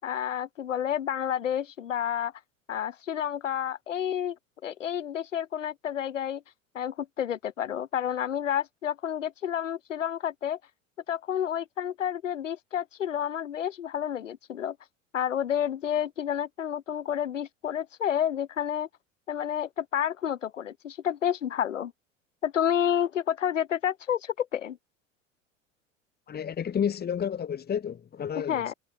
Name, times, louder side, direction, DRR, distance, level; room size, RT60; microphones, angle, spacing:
voice 1, 0.0-2.3 2.7-4.4 4.6-6.4 6.7-10.6 11.1-14.8 15.1-18.9 19.3-21.9 22.4-24.8 28.5-28.7, left 9 dB, 70° left, 5.1 m, -30 dB
voice 2, 26.3-28.6, left 8 dB, 25° left, 2.1 m, -30 dB
figure-of-eight pair, 75°, 38 cm